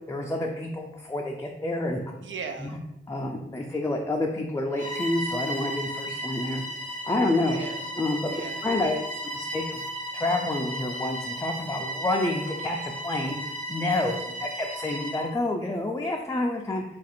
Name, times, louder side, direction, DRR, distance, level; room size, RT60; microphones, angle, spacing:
voice 1, 0.1-2.0 2.6-2.7 3.1-6.6 7.1-7.6 8.0-8.3 8.6-9.0 9.3-9.9 10.1-16.8, left 2 dB, 15° left, 0 dB, 0.3 m, -28 dB
voice 2, 2.2-2.8 7.5-7.9 8.3-8.9 9.4-9.5 14.0-14.4, right 5 dB, 75° right, 5 dB, 0.5 m, -40 dB
Bowed string instrument, 4.7-15.3, right 1 dB, 40° right, 0.9 m, -35 dB
2.9 x 2.5 x 4.2 m, 0.90 s
wide cardioid pair, 85°, 20 cm